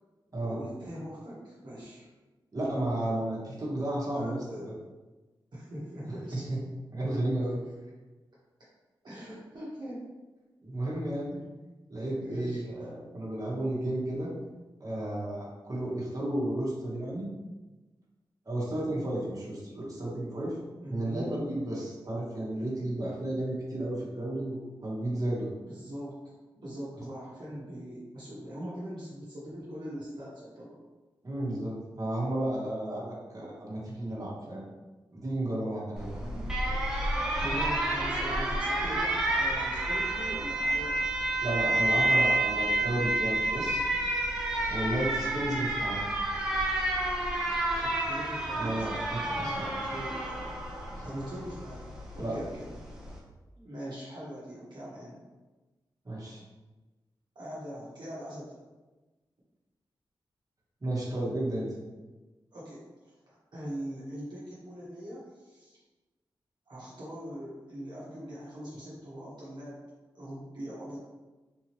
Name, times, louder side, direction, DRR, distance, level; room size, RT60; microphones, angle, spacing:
voice 1, 0.4-2.1 4.1-4.7 5.5-6.4 7.4-7.5 9.0-10.1 12.2-12.6 20.8-21.4 25.6-30.8 36.1-36.5 37.4-41.1 47.7-50.6 51.0-52.7 53.5-55.2 57.3-58.6 62.5-65.8 66.7-69.8 70.1-71.0, equal, 60° right, -8 dB, 1.2 m, -41 dB
voice 2, 2.5-4.4 4.6-4.7 6.3-6.6 6.9-7.6 10.6-11.4 11.9-14.3 14.8-17.3 18.5-20.6 20.9-25.5 31.2-34.6 35.2-36.2 41.4-43.8 44.7-46.0 48.6-49.8 50.9-51.1 52.2-52.3 56.0-56.4 60.8-61.7, right 1 dB, 40° right, -6 dB, 1.3 m, -33 dB
Alarm, 36.0-53.2, right 1 dB, 5° right, 1.0 m, -30 dB
3.8 x 2.8 x 3.0 m, 1.2 s
cardioid pair, 55°, 9 cm